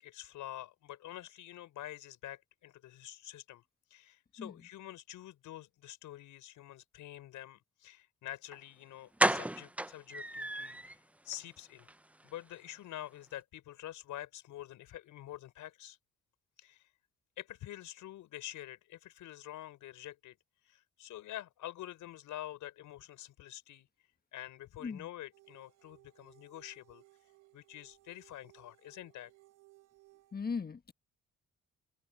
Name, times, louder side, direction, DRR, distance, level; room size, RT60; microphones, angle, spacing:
voice 1, 0.0-3.6 3.9-11.0 11.2-11.9 12.2-16.0 16.6-16.9 17.4-20.4 20.6-23.9 24.3-27.0 27.5-29.3, left 13 dB, 85° left, 5.7 m, -47 dB
door unlocking, 8.5-8.6 9.2-11.0 11.3-11.4 11.8-11.9 12.2-12.3, right 1 dB, 5° right, 0.6 m, -32 dB
sound 1, 25.3-30.4, right 19 dB, 80° right, 3.5 m, -63 dB
voice 2, 30.3-30.9, left 5 dB, 30° left, 1.4 m, -38 dB
open air
cardioid pair, 90°, 30 cm